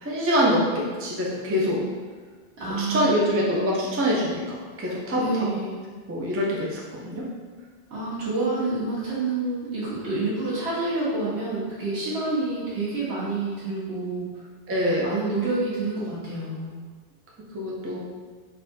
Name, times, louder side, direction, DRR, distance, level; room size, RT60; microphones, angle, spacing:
voice 1, 0.0-1.8 2.8-5.5 6.1-7.2 14.7-15.1 17.5-18.0, equal, 25° right, -4 dB, 0.3 m, -25 dB
voice 2, 2.6-3.5 5.1-5.8 7.9-14.4 15.0-16.7, right 3 dB, 85° right, -9 dB, 1.5 m, -28 dB
3.9 x 2.5 x 2.6 m, 1.5 s
omnidirectional pair, 1.1 m